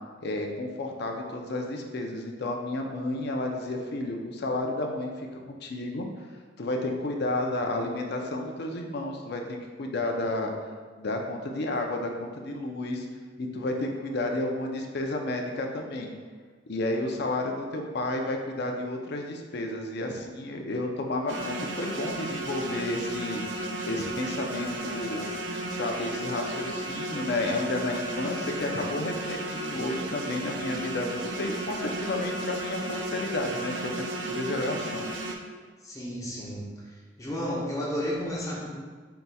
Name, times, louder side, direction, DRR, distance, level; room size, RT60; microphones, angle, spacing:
voice 1, 0.2-6.1 6.6-10.5 11.0-13.1 13.4-16.1 16.7-23.4 23.8-25.2 25.7-35.1, left 2 dB, 60° left, 2 dB, 0.5 m, -31 dB
sound 1, 21.3-35.3, right 1 dB, 70° right, 0.5 m, -34 dB
voice 2, 35.8-36.8 37.2-38.7, equal, 20° left, -5 dB, 0.7 m, -32 dB
4.6 x 4.1 x 2.3 m, 1.5 s
head